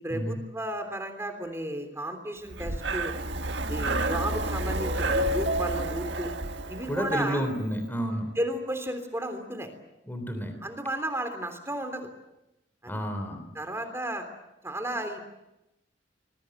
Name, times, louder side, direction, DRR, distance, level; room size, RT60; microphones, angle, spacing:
voice 1, 0.0-3.1 3.7-6.3 6.7-7.4 8.3-9.7 10.6-12.1 12.8-12.9 13.5-14.3 14.6-15.2, right 1 dB, 15° right, 7 dB, 3.3 m, -33 dB
Breathing, 2.5-7.4, right 2 dB, 70° right, 1.7 m, -31 dB
sound 1, 3.3-7.9, equal, 45° right, 3.5 m, -34 dB
voice 2, 6.9-8.4 10.1-10.6 12.8-13.5, equal, 10° left, 7 dB, 3.5 m, -30 dB
26.5 x 21.5 x 7.9 m, 0.93 s
head